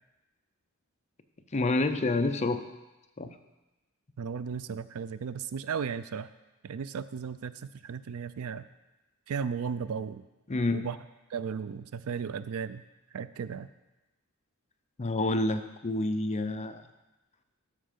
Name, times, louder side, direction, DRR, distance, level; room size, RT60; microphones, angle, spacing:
voice 1, 1.5-2.6 3.2-3.3 10.5-10.8 15.0-16.8, left 2 dB, 30° left, 8 dB, 0.5 m, -28 dB
voice 2, 4.2-6.3 6.6-8.7 9.3-10.3 10.7-11.0 11.3-12.8 13.1-13.7, right 6 dB, 75° right, 14 dB, 0.4 m, -35 dB
13.0 x 4.6 x 5.2 m, 1.0 s
head